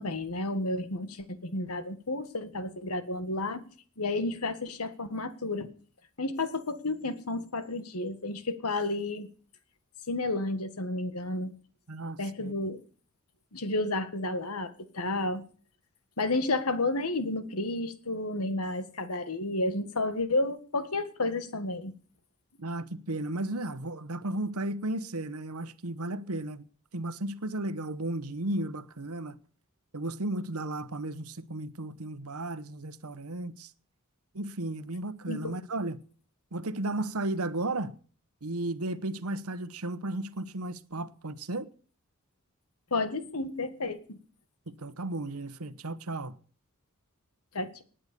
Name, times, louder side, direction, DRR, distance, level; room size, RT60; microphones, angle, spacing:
voice 1, 0.0-3.6 4.0-5.7 6.2-9.3 10.1-11.5 12.2-12.8 13.5-15.4 16.2-21.9 35.3-35.5 42.9-44.2 47.5-47.8, left 2 dB, 90° left, 1.8 m, -31 dB
voice 2, 11.9-12.5 22.6-26.7 26.9-29.4 29.9-33.7 34.3-36.0 36.5-37.9 38.4-41.7 44.7-46.4, right 2 dB, 90° right, 1.1 m, -34 dB
19.0 x 9.0 x 6.9 m
head